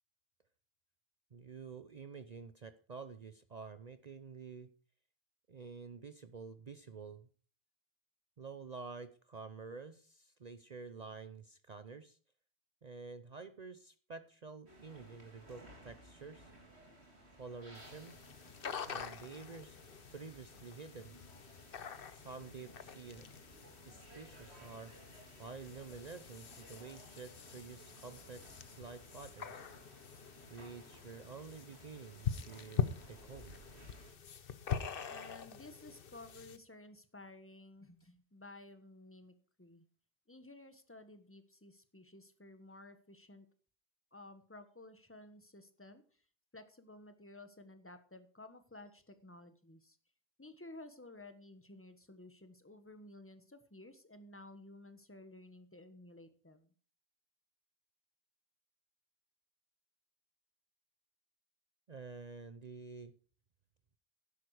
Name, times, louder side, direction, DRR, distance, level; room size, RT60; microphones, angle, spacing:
voice 1, 1.3-4.7 5.5-7.3 8.4-12.2 12.8-16.5 17.4-18.2 18.8-19.8 20.1-21.1 22.1-23.5 23.9-24.9 25.4-29.7 30.5-33.6 61.9-63.1, right 4 dB, 45° right, 11 dB, 0.7 m, -49 dB
sound 1, 14.7-34.1, right 1 dB, 75° right, 3.4 m, -59 dB
sound 2, 17.7-36.6, left 7 dB, 60° left, 1.0 m, -44 dB
voice 2, 35.1-39.9 40.3-43.5 44.1-46.0 46.5-50.0 50.4-56.7, left 2 dB, 10° left, 9 dB, 1.3 m, -54 dB
11.5 x 10.5 x 4.9 m, 0.42 s
omnidirectional pair, 1.1 m